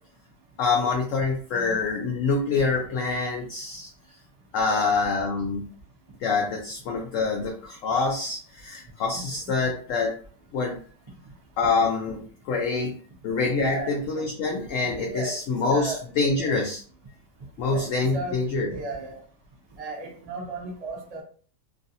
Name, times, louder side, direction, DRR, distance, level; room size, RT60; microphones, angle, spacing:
voice 1, 0.6-3.9 4.5-5.6 6.2-10.1 10.5-10.8 11.6-12.9 13.2-16.8 17.6-18.7, left 4 dB, 65° left, 1 dB, 0.8 m, -26 dB
voice 2, 9.1-9.5 13.6-13.9 15.1-15.4 15.7-16.0 16.3-16.6 17.7-18.4 18.7-19.2 19.8-21.2, right 2 dB, 50° right, 0 dB, 0.4 m, -35 dB
3.0 x 2.5 x 2.7 m, 0.43 s
omnidirectional pair, 1.8 m